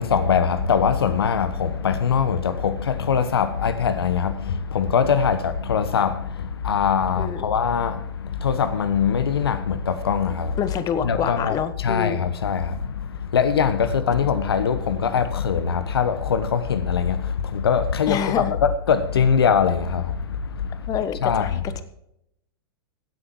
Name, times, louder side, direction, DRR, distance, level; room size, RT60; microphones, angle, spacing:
voice 1, 0.0-10.7 11.0-20.9 21.2-21.6, left 7 dB, 70° left, 1.1 m, -22 dB
voice 2, 7.2-7.5 10.6-12.2 18.1-18.5 20.9-21.8, left 8 dB, 30° left, 1.2 m, -27 dB
16.5 x 8.8 x 4.6 m
figure-of-eight pair, 100°, 13 cm